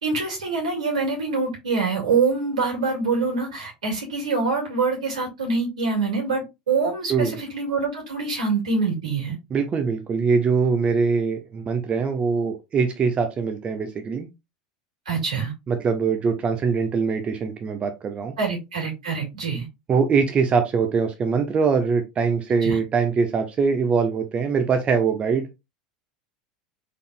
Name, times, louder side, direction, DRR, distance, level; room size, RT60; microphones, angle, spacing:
voice 1, 0.0-9.4 15.1-15.5 18.4-19.7 22.6-22.8, right 4 dB, 80° right, -1 dB, 2.6 m, -25 dB
voice 2, 9.5-14.3 15.7-18.4 19.9-25.5, right 5 dB, 30° right, 6 dB, 0.7 m, -22 dB
4.0 x 3.4 x 2.5 m, 0.23 s
hypercardioid pair, 80°, 4 cm